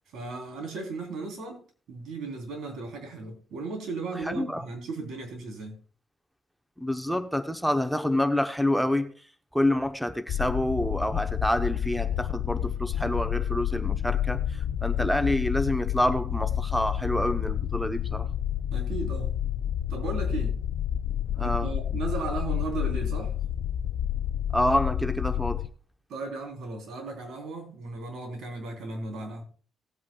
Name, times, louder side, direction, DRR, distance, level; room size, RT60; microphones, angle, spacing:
voice 1, 0.1-5.8 18.7-19.4 19.9-20.6 21.4-23.4 26.1-29.4, right 3 dB, 70° right, 3.4 m, -36 dB
voice 2, 4.3-4.6 6.8-9.1 9.5-18.3 21.4-21.7 24.5-25.7, left 1 dB, ahead, 0.8 m, -27 dB
sound 1, 10.3-25.7, left 10 dB, 70° left, 0.4 m, -29 dB
18.5 x 8.4 x 2.3 m
cardioid pair, 110°, 0 cm